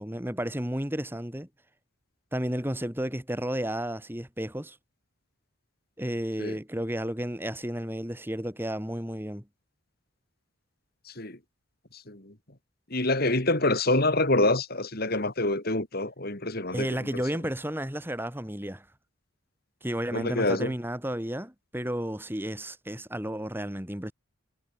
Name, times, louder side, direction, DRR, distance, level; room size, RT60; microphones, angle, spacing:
voice 1, 0.0-1.5 2.3-4.8 6.0-9.4 16.7-18.9 19.8-24.1, equal, 10° right, 3.0 m, -32 dB
voice 2, 11.1-11.4 11.9-12.3 12.9-16.9 17.1-17.2 20.1-20.7, left 2 dB, 45° left, 3.4 m, -26 dB
head